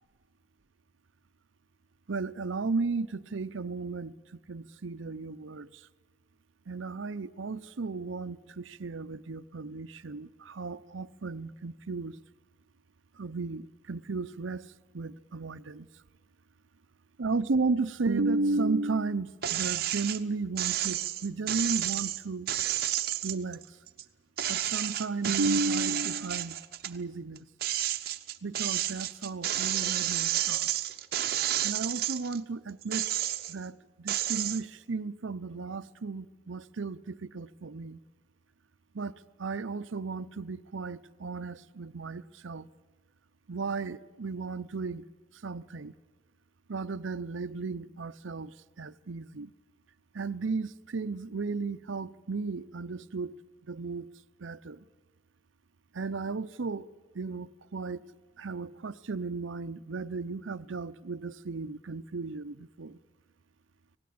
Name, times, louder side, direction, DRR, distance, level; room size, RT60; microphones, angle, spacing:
voice 1, 2.1-5.8 6.7-12.2 13.2-15.9 17.2-22.5 23.2-23.7 24.5-26.6 26.8-27.5 28.4-30.7 31.6-33.1 33.5-38.0 38.9-42.7 43.5-45.0 45.4-45.9 46.7-49.5 50.1-53.4 53.7-54.1 54.4-54.8 55.9-56.9 57.1-58.0 58.4-63.0, right 3 dB, 85° right, 0.7 m, -34 dB
sound 1, 19.4-20.2 20.6-24.0 24.4-27.0 27.4-32.4 32.8-33.6 34.1-34.6, right 12 dB, 50° right, 0.9 m, -31 dB
25.5 x 18.5 x 8.6 m
head